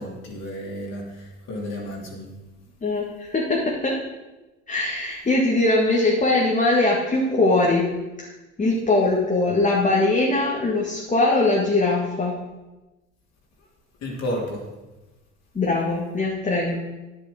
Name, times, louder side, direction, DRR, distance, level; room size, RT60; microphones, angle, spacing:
voice 1, 0.0-2.3 14.0-14.7, equal, 45° left, -2 dB, 3.1 m, -32 dB
voice 2, 2.8-3.9 4.7-7.9 8.6-12.3 15.6-16.7, left 2 dB, 20° left, -3 dB, 2.0 m, -21 dB
9.9 x 7.6 x 5.2 m, 1.1 s
hypercardioid pair, 70°, 34 cm